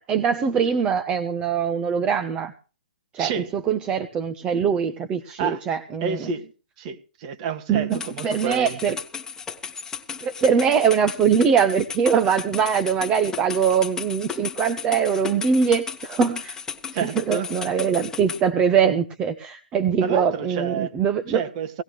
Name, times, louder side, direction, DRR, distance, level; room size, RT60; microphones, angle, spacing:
voice 1, 0.1-2.5 3.1-6.3 7.7-9.0 10.2-16.6 17.0-21.4, right 7 dB, 20° right, 1.1 m, -22 dB
voice 2, 3.2-3.5 5.4-5.6 6.0-6.5 6.8-8.8 16.9-17.5 20.0-20.9 21.3-21.8, right 6 dB, 40° right, 2.0 m, -29 dB
sound 1, 7.9-18.4, left 6 dB, 10° left, 1.7 m, -35 dB
19.0 x 15.5 x 3.2 m
hypercardioid pair, 140°, 5 cm